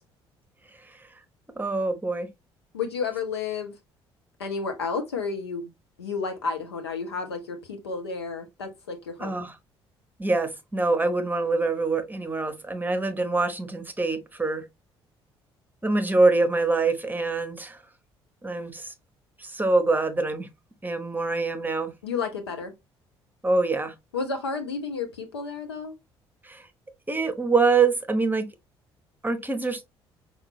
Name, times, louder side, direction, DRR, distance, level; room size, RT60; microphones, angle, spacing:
voice 1, 1.6-2.3 9.2-9.5 10.2-14.6 15.8-17.8 18.4-18.9 19.4-20.5 20.8-21.9 23.4-23.9 26.4-26.6 27.1-28.5 29.2-29.8, right 3 dB, 15° right, 1.0 m, -25 dB
voice 2, 2.7-3.7 4.4-5.7 6.0-9.5 22.0-22.7 24.1-25.9, left 5 dB, 80° left, 0.9 m, -31 dB
5.7 x 2.3 x 3.1 m
figure-of-eight pair, 50°, 13 cm